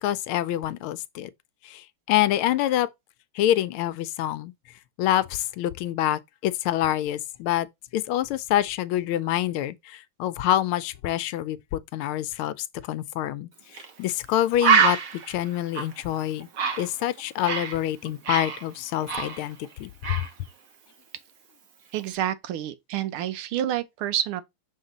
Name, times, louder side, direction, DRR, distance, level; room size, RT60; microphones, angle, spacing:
voice 1, 0.0-1.3 1.6-2.9 3.3-4.5 5.0-7.7 7.9-13.5 14.0-15.0 15.3-16.5 16.8-20.3, left 12 dB, 85° left, 1.4 m, -26 dB
Bird, 13.7-13.9 14.2-14.3 14.6-17.8 18.1-19.7 20.0-20.3, right 6 dB, 50° right, 1.2 m, -25 dB
voice 2, 21.9-24.4, right 11 dB, 90° right, 1.6 m, -28 dB
6.5 x 3.8 x 3.8 m
omnidirectional pair, 2.3 m